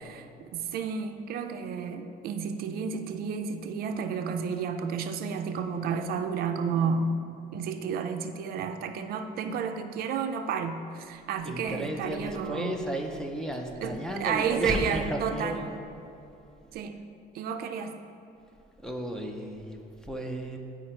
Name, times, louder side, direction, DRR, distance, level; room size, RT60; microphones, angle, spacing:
voice 1, 0.0-7.2 7.5-12.8 13.8-15.6 16.7-17.0 17.3-18.0, right 6 dB, 55° right, 7 dB, 0.5 m, -31 dB
voice 2, 11.4-15.8 18.8-20.6, right 1 dB, 5° left, 2 dB, 0.5 m, -34 dB
9.6 x 4.8 x 4.3 m, 2.8 s
cardioid pair, 170°, 18 cm